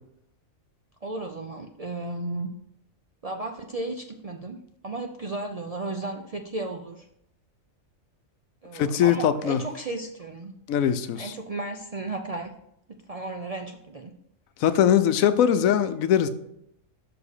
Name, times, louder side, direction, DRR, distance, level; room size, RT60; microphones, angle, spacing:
voice 1, 1.0-2.5 3.2-7.1 8.6-10.5 11.2-12.5 13.1-14.1, right 2 dB, 50° right, 0.4 m, -34 dB
voice 2, 8.7-9.6 10.7-11.3 14.6-16.3, left 9 dB, 90° left, 1.1 m, -21 dB
6.5 x 4.9 x 6.6 m
omnidirectional pair, 1.4 m